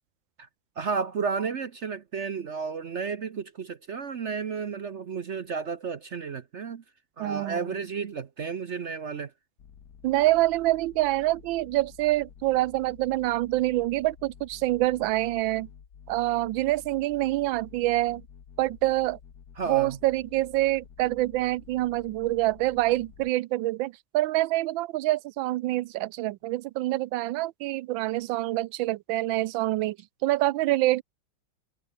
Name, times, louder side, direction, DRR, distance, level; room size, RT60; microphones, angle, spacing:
voice 1, 0.8-6.8 7.2-9.3 19.6-20.0, right 5 dB, 50° right, 0.9 m, -32 dB
voice 2, 7.2-7.8 10.0-15.7 16.1-18.2 18.6-19.2 19.7-30.0 30.2-31.0, right 17 dB, 80° right, 1.3 m, -26 dB
sound 1, 9.6-23.3, left 7 dB, 55° left, 1.9 m, -51 dB
omnidirectional pair, 2.1 m